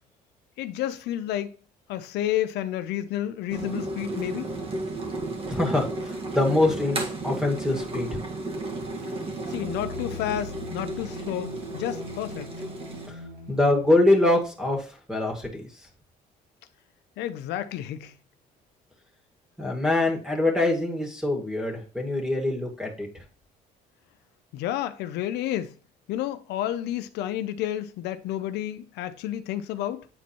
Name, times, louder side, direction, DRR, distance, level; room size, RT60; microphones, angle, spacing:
voice 1, 0.6-1.5 1.9-4.5 9.5-12.5 17.2-18.1 24.5-25.7 26.1-30.1, left 12 dB, 85° left, 0.6 m, -30 dB
sound 1, 3.5-13.1, right 2 dB, 35° right, 1.8 m, -33 dB
voice 2, 5.5-8.2 13.1-13.2 13.5-15.6 19.6-23.1, left 2 dB, 5° right, 2.2 m, -24 dB
sound 2, 7.6-13.9, left 2 dB, 85° right, 2.9 m, -41 dB
8.8 x 4.3 x 3.1 m
cardioid pair, 110°, 17 cm